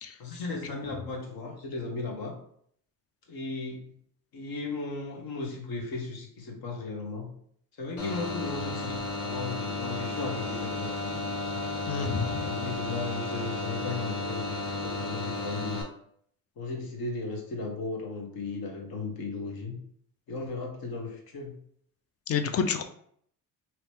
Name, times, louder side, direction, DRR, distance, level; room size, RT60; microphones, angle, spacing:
voice 1, 0.2-2.4 3.3-3.9 4.3-7.3 7.8-11.3 12.0-15.8 16.6-19.8 20.3-21.6, left 3 dB, 65° left, 1 dB, 1.2 m, -36 dB
sound 1, 8.0-15.8, left 3 dB, 85° left, 1.3 m, -33 dB
voice 2, 11.9-12.5 22.3-22.8, left 6 dB, 35° left, 8 dB, 0.5 m, -29 dB
2.9 x 2.8 x 3.4 m, 0.63 s
supercardioid pair, 70°, 39 cm